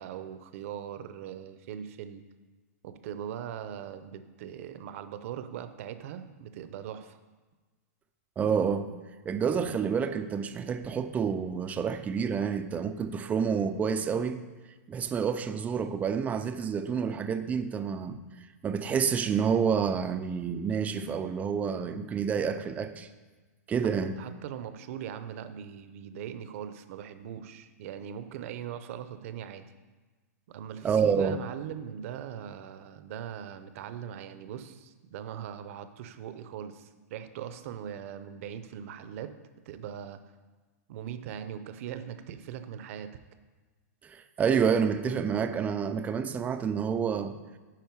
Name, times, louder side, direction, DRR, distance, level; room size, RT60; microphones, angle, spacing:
voice 1, 0.0-2.2 2.8-7.2 24.2-29.7 30.5-39.3 39.7-40.2 40.9-43.1, right 9 dB, 55° right, 10 dB, 0.7 m, -40 dB
voice 2, 8.4-8.9 9.3-14.4 14.9-18.2 18.6-23.1 23.7-24.2 30.8-31.3 44.0-47.3, right 6 dB, 15° right, 9 dB, 0.5 m, -28 dB
10.5 x 4.5 x 4.7 m, 1.3 s
hypercardioid pair, 140°, 9 cm